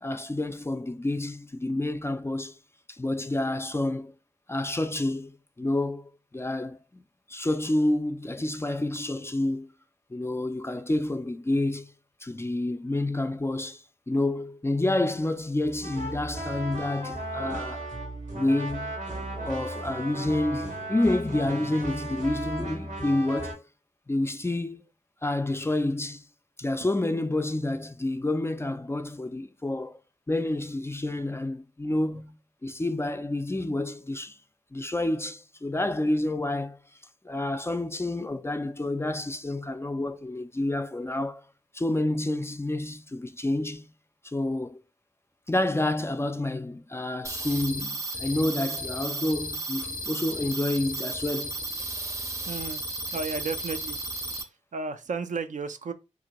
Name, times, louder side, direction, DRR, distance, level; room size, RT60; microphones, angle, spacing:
voice 1, 0.0-2.6 2.9-4.1 4.5-6.8 7.3-9.7 10.1-11.9 12.2-17.9 18.3-19.0 19.4-23.6 24.1-24.8 25.2-26.2 26.6-30.0 30.3-32.4 32.6-34.4 34.7-36.8 37.2-41.4 41.7-43.9 44.2-44.8 45.5-51.6, left 1 dB, 20° left, 0.3 m, -29 dB
sound 1, 15.6-23.5, right 1 dB, 90° right, 1.2 m, -35 dB
sound 2, 47.2-54.4, right 2 dB, 20° right, 0.6 m, -34 dB
voice 2, 52.4-52.8 53.1-54.0 54.3-55.9, right 4 dB, 70° right, 0.4 m, -33 dB
2.8 x 2.5 x 2.9 m
cardioid pair, 50°, 13 cm